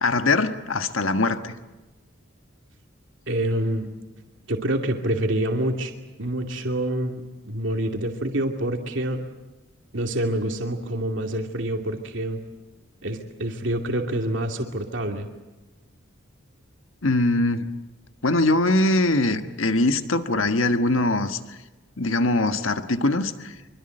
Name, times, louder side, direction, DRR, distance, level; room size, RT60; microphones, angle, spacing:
voice 1, 0.0-1.5 17.0-17.6 18.2-21.6 22.0-23.5, left 2 dB, 80° left, 8 dB, 1.5 m, -22 dB
voice 2, 3.3-3.9 4.5-5.9 6.2-9.2 9.9-12.4 13.0-15.3, right 1 dB, 65° right, 3 dB, 2.5 m, -26 dB
25.5 x 23.5 x 7.9 m, 1.1 s
head